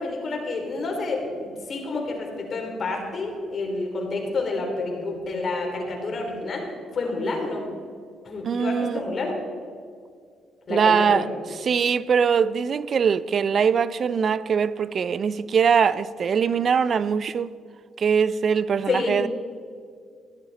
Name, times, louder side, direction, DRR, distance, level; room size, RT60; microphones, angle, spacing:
voice 1, 0.0-6.6 6.9-7.7 8.2-9.3 10.7-11.2 18.9-19.2, left 3 dB, 50° left, 3.4 m, -29 dB
voice 2, 8.4-9.0 10.7-11.3 11.6-17.5 18.0-19.3, right 6 dB, 50° right, 0.5 m, -22 dB
15.5 x 11.5 x 4.1 m
cardioid pair, 90°, 0 cm